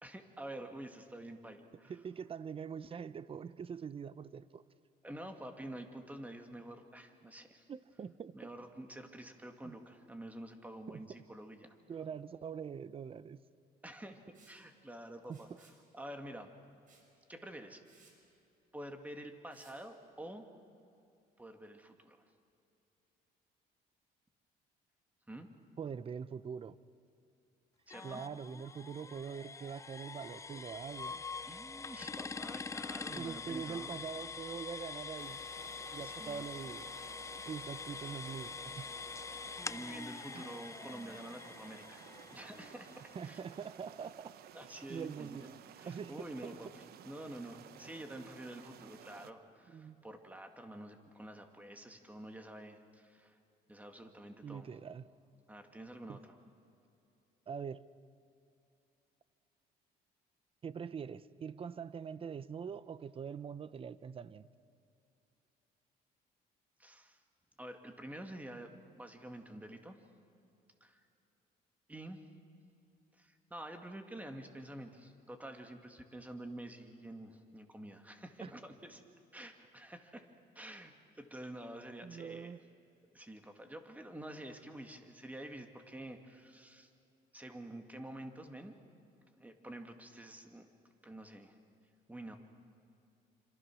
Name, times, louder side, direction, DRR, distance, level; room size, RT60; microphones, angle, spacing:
voice 1, 0.0-1.9 5.0-7.6 8.3-11.8 13.8-14.2 14.5-15.7 15.9-16.5 17.3-17.8 18.7-20.5 21.4-22.2 25.3-25.5 27.9-28.2 31.5-34.0 36.0-36.5 39.7-43.4 44.5-45.5 45.7-53.4 53.7-54.7 55.5-56.3 66.8-67.2 67.6-70.0 70.8-71.0 71.9-72.2 73.1-79.0 79.3-80.3 80.5-82.5 83.1-86.9 87.3-88.8 89.2-90.7 91.0-91.6 92.1-92.4, right 1 dB, 10° right, 2.4 m, -48 dB
voice 2, 1.9-4.6 7.7-8.5 9.6-9.7 10.9-11.0 11.9-13.4 15.3-15.4 25.8-26.8 28.0-31.2 33.1-35.4 35.9-36.9 37.5-38.9 40.3-40.4 43.1-44.4 44.7-45.6 45.9-46.6 49.7-50.0 54.4-55.1 56.1-56.2 57.5-57.9 60.6-64.5 78.4-78.5 82.0-82.6, right 6 dB, 35° right, 0.8 m, -43 dB
Liquid, 14.3-14.6 15.2-15.8 16.9-17.1 17.5-17.6 17.9-18.2 19.5-19.8, right 4 dB, 50° right, 5.9 m, -64 dB
sound 1, 27.9-43.6, left 5 dB, 15° left, 0.5 m, -45 dB
sound 2, 35.2-49.3, right 10 dB, 65° right, 1.1 m, -55 dB
27.5 x 26.5 x 6.3 m
cardioid pair, 110°, 17 cm